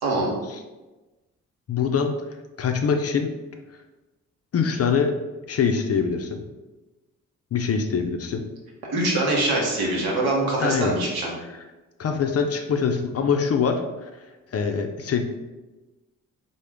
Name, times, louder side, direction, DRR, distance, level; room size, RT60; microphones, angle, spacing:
voice 1, 0.0-0.3 8.9-11.3, right 2 dB, 75° right, -2 dB, 1.0 m, -23 dB
voice 2, 1.7-2.1 2.6-3.3 4.5-5.1 5.5-6.4 7.5-8.4 10.6-11.0 12.0-14.1 14.5-15.2, left 6 dB, 40° left, 5 dB, 0.5 m, -23 dB
3.7 x 2.1 x 3.4 m, 1.1 s
hypercardioid pair, 40°, 38 cm